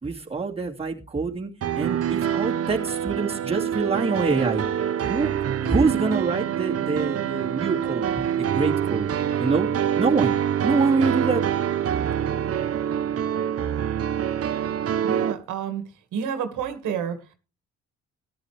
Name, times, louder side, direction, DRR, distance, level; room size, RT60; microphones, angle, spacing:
voice 1, 0.0-4.6 5.0-9.1 9.4-11.4, right 4 dB, 20° right, -1 dB, 2.5 m, -26 dB
sound 1, 1.6-15.3, right 9 dB, 50° right, 1.0 m, -25 dB
voice 2, 15.0-15.8 16.1-17.2, right 7 dB, 85° right, 8 dB, 2.0 m, -29 dB
13.5 x 11.0 x 3.4 m, 0.30 s
cardioid pair, 90°, 30 cm